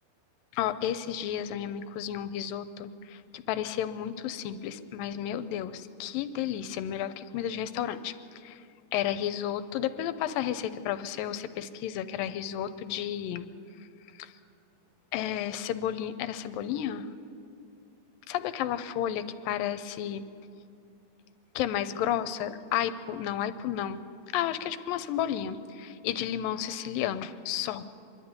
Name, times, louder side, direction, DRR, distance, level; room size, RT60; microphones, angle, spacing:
voice 1, 0.5-8.1 8.4-8.6 8.9-13.5 14.2-14.3 15.1-17.1 18.3-20.2 21.6-24.0 24.3-27.8, left 10 dB, 80° left, 11 dB, 2.3 m, -32 dB
25.0 x 11.5 x 9.5 m, 2.5 s
omnidirectional pair, 4.2 m